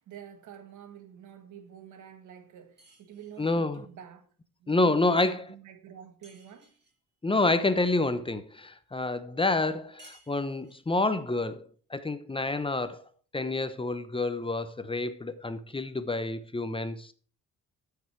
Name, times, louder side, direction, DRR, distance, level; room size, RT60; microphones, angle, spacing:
voice 1, 0.0-4.3 4.6-6.7, right 9 dB, 75° right, 1.9 m, -48 dB
sound 1, 2.8-3.6 6.2-7.0 10.0-10.9, right 1 dB, 35° right, 6.0 m, -58 dB
voice 2, 3.4-3.8 4.7-5.4 7.2-11.6 11.9-13.0 13.3-17.1, left 2 dB, 15° left, 1.0 m, -28 dB
13.5 x 6.8 x 4.7 m
cardioid pair, 90°, 30 cm